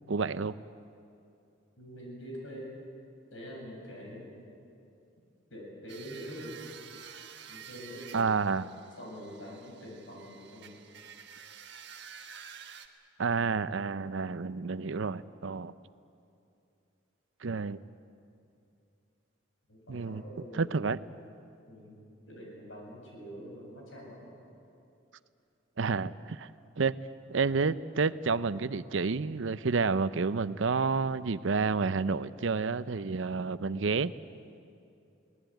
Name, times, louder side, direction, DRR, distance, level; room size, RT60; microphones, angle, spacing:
voice 1, 0.1-0.5 8.1-8.7 13.2-15.7 17.4-17.8 19.9-20.2 20.5-21.0 25.8-26.5 26.8-26.9 27.3-34.1, right 4 dB, 75° right, 15 dB, 0.6 m, -29 dB
voice 2, 1.8-2.7 3.3-4.3 5.5-6.6 7.5-8.3 9.0-10.8 19.7-20.9 21.7-24.3, equal, 80° left, -1 dB, 7.8 m, -45 dB
sound 1, 5.9-12.9, right 7 dB, 60° right, 1.4 m, -50 dB
23.5 x 18.5 x 9.2 m, 2.6 s
head